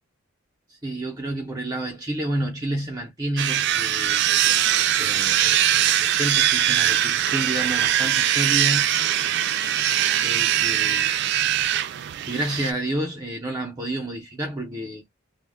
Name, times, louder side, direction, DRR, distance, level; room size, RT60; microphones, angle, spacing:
voice 1, 0.7-4.7 5.0-8.9 10.2-11.2 12.2-15.0, right 1 dB, 20° right, 0.6 m, -30 dB
sound 1, 3.4-12.7, right 11 dB, 60° right, 0.3 m, -21 dB
2.2 x 2.0 x 3.3 m
head